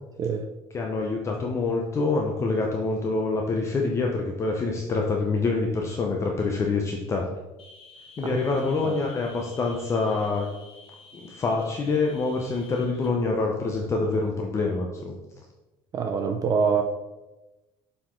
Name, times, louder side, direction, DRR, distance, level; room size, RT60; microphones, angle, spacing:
voice 1, 0.7-7.3 8.2-10.5 11.2-15.1, left 3 dB, 25° left, 0 dB, 0.7 m, -26 dB
sound 1, 7.6-13.1, left 3 dB, 55° left, 1.4 m, -50 dB
voice 2, 15.9-16.8, right 6 dB, 35° right, 4 dB, 0.5 m, -25 dB
7.3 x 4.3 x 3.8 m, 1.0 s
cardioid pair, 150°, 11 cm